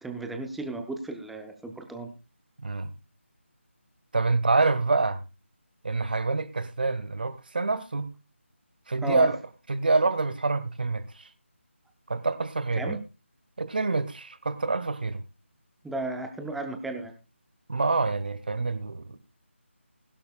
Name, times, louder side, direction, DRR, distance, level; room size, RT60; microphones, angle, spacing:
voice 1, 0.0-2.1 9.0-9.3 12.8-13.0 15.8-17.1, right 2 dB, ahead, 0.6 m, -34 dB
voice 2, 2.6-2.9 4.1-5.2 5.8-8.1 8.9-9.4 9.7-11.3 12.1-13.0 13.6-15.2 17.7-19.2, right 3 dB, 45° right, 1.4 m, -26 dB
20.5 x 11.5 x 2.3 m
figure-of-eight pair, 160°, 7 cm